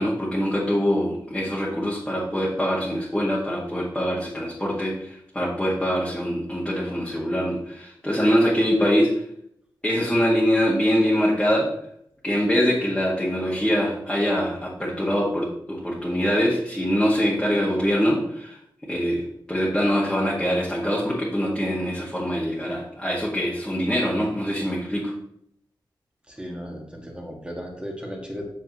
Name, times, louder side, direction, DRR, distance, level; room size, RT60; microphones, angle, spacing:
voice 1, 0.0-9.2 9.8-11.7 12.2-18.6 18.9-25.1, equal, 10° left, -6 dB, 1.9 m, -23 dB
voice 2, 26.3-28.4, equal, 10° right, -1 dB, 2.0 m, -35 dB
8.1 x 7.2 x 3.1 m, 0.71 s
wide cardioid pair, 115°, 8 cm